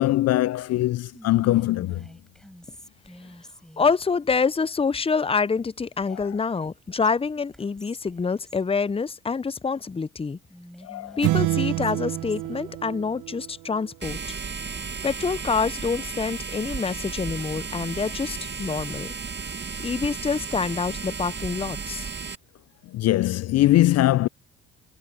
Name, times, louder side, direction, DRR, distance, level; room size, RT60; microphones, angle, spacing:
voice 1, 0.0-2.1 6.1-6.4 10.8-11.2 22.8-24.3, left 15 dB, 50° left, 0.6 m, -22 dB
Whispering, 1.1-4.0 6.0-6.7 7.0-7.1 7.5-8.7 10.5-12.6, equal, ahead, 4.7 m, -47 dB
voice 2, 3.8-10.4 11.2-14.2 15.0-19.1 19.8-22.1, left 5 dB, 15° left, 0.8 m, -26 dB
sound 1, 11.2-13.9, right 17 dB, 65° right, 1.4 m, -27 dB
sound 2, 14.0-22.3, right 5 dB, 35° right, 2.3 m, -34 dB
hypercardioid pair, 55°, 33 cm